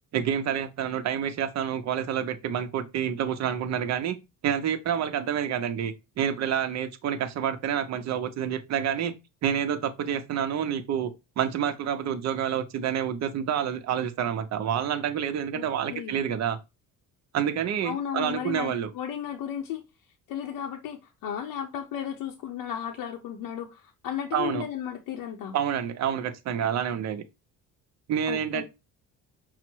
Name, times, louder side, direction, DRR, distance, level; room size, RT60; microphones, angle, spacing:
voice 1, 0.1-4.2 4.4-9.1 9.4-16.6 17.3-18.9 24.3-24.6 25.5-27.3 28.1-28.6, right 9 dB, 50° right, 0.7 m, -28 dB
voice 2, 15.5-16.2 17.8-19.8 20.3-25.6 28.3-28.6, left 9 dB, 70° left, 0.7 m, -34 dB
5.7 x 2.0 x 4.4 m
cardioid pair, 130°, 36 cm